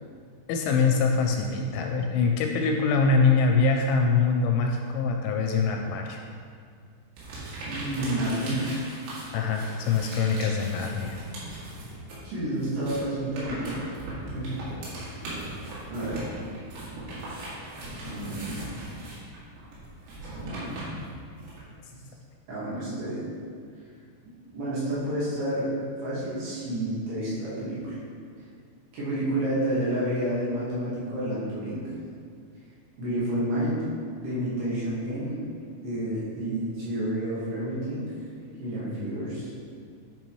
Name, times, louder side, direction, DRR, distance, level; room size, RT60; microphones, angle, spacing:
voice 1, 0.5-6.2 9.3-11.2, left 4 dB, 85° left, 2 dB, 2.8 m, -24 dB
sound 1, 7.2-12.2 12.5-21.6, right 1 dB, 80° right, 4.5 m, -39 dB
voice 2, 7.7-8.9 12.2-13.7 14.3-14.5 15.9-16.2 18.0-18.6 20.3-20.7 22.5-23.3 24.5-25.7 26.0-28.0 28.9-31.9 33.0-33.9 34.2-35.4 35.8-38.1 38.6-39.5, right 1 dB, 60° right, -9 dB, 3.4 m, -30 dB
10.5 x 5.6 x 3.1 m, 2.2 s
omnidirectional pair, 5.7 m